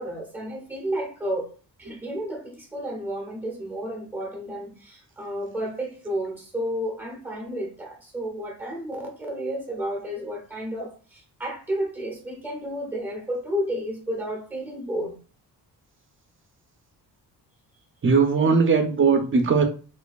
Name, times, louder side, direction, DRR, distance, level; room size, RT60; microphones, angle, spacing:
voice 1, 0.0-1.5 1.8-15.2, equal, 5° right, 0.8 m, -32 dB
voice 2, 18.0-19.6, right 5 dB, 30° right, 0.5 m, -19 dB
4.4 x 2.6 x 2.3 m
wide cardioid pair, 170°, 41 cm